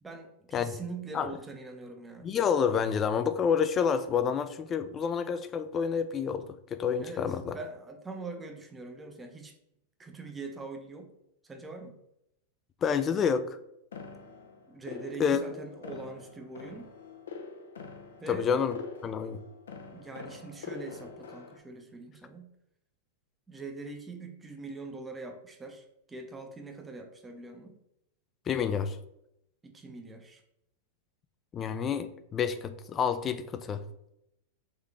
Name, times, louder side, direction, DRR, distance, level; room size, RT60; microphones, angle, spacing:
voice 1, 0.0-2.3 7.0-7.2 7.5-9.5 10.0-11.1 11.4-11.9 14.7-16.9 18.2-18.5 19.9-22.5 23.5-27.8 29.6-30.4, right 3 dB, 15° right, 4 dB, 0.7 m, -43 dB
voice 2, 2.2-7.6 12.8-13.6 15.2-15.4 18.3-18.7 19.0-19.4 28.5-29.0 31.5-33.8, left 7 dB, 25° left, 10 dB, 0.4 m, -28 dB
sound 1, 13.9-21.6, left 5 dB, 90° left, 0.6 m, -45 dB
3.8 x 3.1 x 3.4 m, 0.82 s
hypercardioid pair, 125°, 0 cm